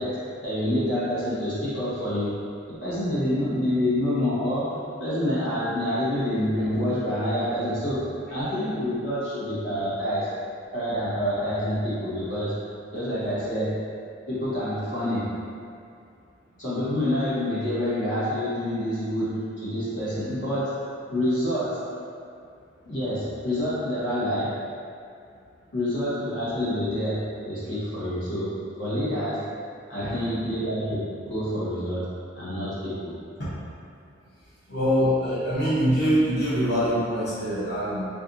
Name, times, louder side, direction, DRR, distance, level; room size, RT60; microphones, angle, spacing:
voice 1, 0.0-2.4 2.7-10.3 10.7-12.6 12.9-13.8 14.3-15.4 16.6-22.0 22.8-24.6 25.7-29.5 29.9-32.1 32.3-33.1, left 1 dB, 80° left, -12 dB, 1.3 m, -27 dB
voice 2, 34.7-38.1, equal, 55° left, -14 dB, 1.1 m, -24 dB
4.4 x 2.4 x 2.7 m, 2.5 s
head